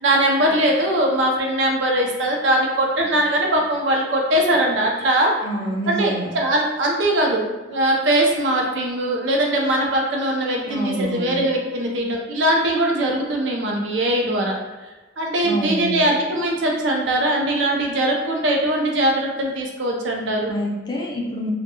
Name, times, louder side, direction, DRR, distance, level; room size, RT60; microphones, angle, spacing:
voice 1, 0.0-5.3 5.9-7.4 7.7-14.6 15.2-20.5, right 1 dB, 70° right, 0 dB, 0.5 m, -21 dB
voice 2, 5.4-6.3 10.7-11.4 15.4-16.1 20.5-21.5, equal, 20° left, -2 dB, 0.4 m, -26 dB
2.2 x 2.1 x 2.8 m, 1.2 s
head